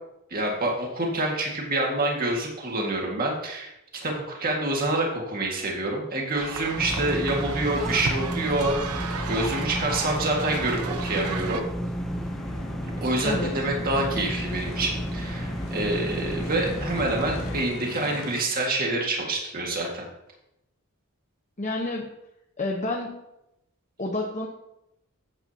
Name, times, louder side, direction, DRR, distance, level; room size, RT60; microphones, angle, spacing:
voice 1, 0.3-11.7 13.0-20.1, right 2 dB, 40° right, -1 dB, 1.9 m, -27 dB
sound 1, 6.4-11.6, right 4 dB, 90° right, 1.0 m, -34 dB
sound 2, 6.8-17.7, equal, ahead, 0.6 m, -32 dB
sound 3, 11.7-18.4, left 2 dB, 70° left, 1.6 m, -40 dB
voice 2, 21.6-22.1 22.6-23.2 24.0-24.5, left 2 dB, 35° left, -1 dB, 1.0 m, -29 dB
14.5 x 8.8 x 2.8 m, 0.86 s
head